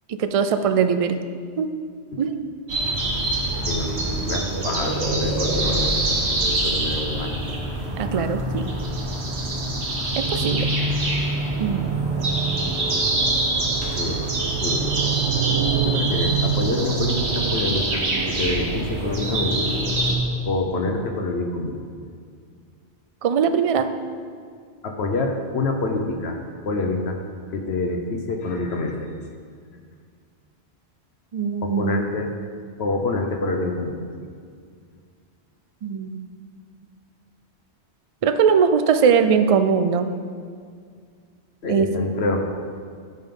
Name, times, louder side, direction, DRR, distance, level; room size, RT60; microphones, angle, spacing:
voice 1, 0.2-1.2 1.6-1.7 2.2-2.4 8.0-8.7 10.2-10.7 11.6-11.8 23.2-23.9 31.3-32.1 35.8-36.2 38.2-40.1 41.7-41.9, right 6 dB, 55° right, 9 dB, 0.4 m, -20 dB
sound 1, 2.7-20.1, right 2 dB, 80° right, 1.6 m, -24 dB
voice 2, 3.6-6.0 6.3-7.3 14.0-14.2 14.6-15.0 15.8-19.7 20.5-21.8 24.8-26.4 26.7-27.2 27.5-29.1 31.6-32.3 32.8-34.0 41.6-42.4, left 2 dB, 70° left, 2 dB, 1.1 m, -26 dB
14.0 x 5.3 x 3.8 m, 2.1 s
omnidirectional pair, 1.1 m